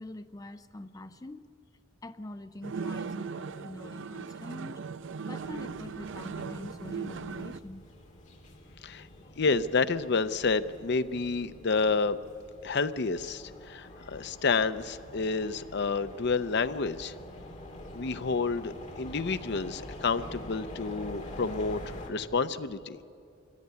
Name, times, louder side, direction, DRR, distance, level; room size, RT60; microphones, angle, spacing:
voice 1, 0.0-1.5 2.0-4.8 5.3-7.9, left 1 dB, 20° left, 10 dB, 0.5 m, -44 dB
sound 1, 2.6-7.6, right 5 dB, 70° right, 0.5 m, -38 dB
sound 2, 5.4-22.1, left 1 dB, 40° left, 2.7 m, -46 dB
voice 2, 9.4-12.2 12.6-17.1 17.9-21.8 22.1-23.0, left 4 dB, 60° left, 12 dB, 0.7 m, -29 dB
24.0 x 16.0 x 9.6 m, 2.6 s
head